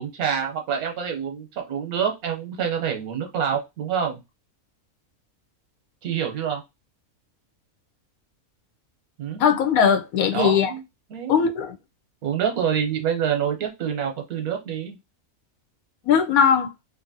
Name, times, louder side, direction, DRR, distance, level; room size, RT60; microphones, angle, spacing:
voice 1, 0.0-4.2 6.0-6.6 9.2-9.4 10.3-10.8 11.1-11.3 12.2-15.0, right 8 dB, 90° right, 1.4 m, -26 dB
voice 2, 9.4-10.7 11.3-11.7 16.0-16.7, left 7 dB, 85° left, 1.1 m, -19 dB
3.0 x 2.6 x 2.6 m
omnidirectional pair, 1.5 m